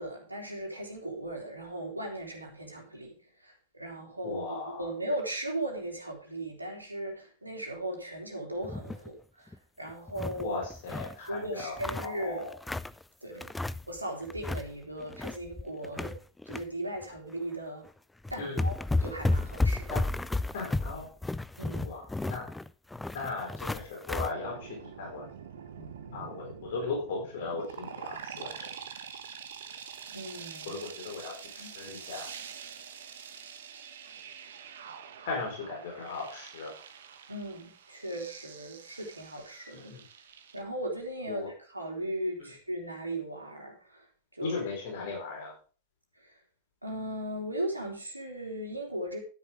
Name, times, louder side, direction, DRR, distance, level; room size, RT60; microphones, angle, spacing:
voice 1, 0.0-3.1 3.4-10.6 11.3-12.5 13.2-13.4 13.9-16.2 16.5-17.9 18.3-19.9 21.6-22.0 25.8-26.2 28.3-28.4 30.1-30.8 31.6-31.8 37.3-39.9 40.5-44.0 44.3-44.6 45.0-45.1 46.2-46.4 46.8-49.2, right 1 dB, 85° right, 1 dB, 3.4 m, -37 dB
voice 2, 4.2-4.9 10.4-12.6 13.3-13.4 18.4-18.7 19.9-20.0 20.5-21.1 21.8-22.5 23.1-25.3 26.1-28.7 30.6-32.3 35.2-36.7 39.7-40.0 41.3-41.5 42.4-42.5 44.4-45.5, left 4 dB, 55° left, 0 dB, 4.7 m, -37 dB
sound 1, 8.6-9.1 9.5-9.6 9.9-11.2 11.6-13.0 13.4-14.0 14.2-14.7 15.0-16.6 17.0-17.2 17.9-18.0 18.2-24.3, left 2 dB, 5° left, 0.5 m, -32 dB
sound 2, 24.3-40.6, right 7 dB, 60° right, 1.3 m, -46 dB
12.0 x 10.0 x 3.7 m, 0.39 s
figure-of-eight pair, 90°, 0 cm